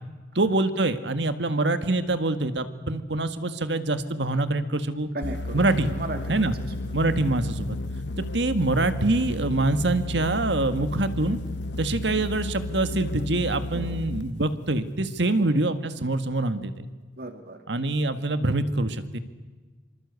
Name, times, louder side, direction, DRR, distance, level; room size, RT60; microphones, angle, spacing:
voice 1, 0.4-5.1 5.5-5.9 6.3-6.5 6.9-7.8 8.2-11.4 11.8-16.9 17.7-19.2, right 2 dB, 85° right, 10 dB, 1.8 m, -25 dB
voice 2, 5.1-6.5 7.0-7.1 13.7-13.9 15.4-15.6 17.2-17.6, right 2 dB, 60° right, 7 dB, 2.3 m, -36 dB
sound 1, 5.2-14.3, left 2 dB, 80° left, 1.0 m, -33 dB
26.0 x 25.5 x 8.4 m, 1.3 s
head